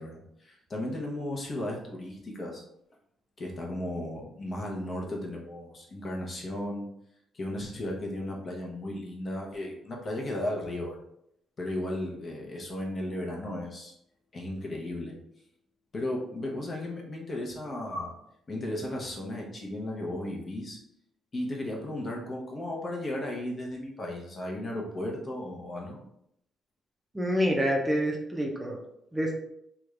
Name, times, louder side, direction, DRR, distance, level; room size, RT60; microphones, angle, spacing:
voice 1, 0.0-2.6 3.4-6.9 7.3-11.0 11.6-13.9 14.3-15.2 15.9-18.1 18.5-20.8 21.3-26.0, left 1 dB, 40° left, -1 dB, 0.9 m, -35 dB
voice 2, 27.1-28.8 29.1-29.4, equal, 10° right, 0 dB, 0.6 m, -27 dB
3.4 x 2.4 x 3.2 m, 0.76 s
cardioid pair, 90°, 0 cm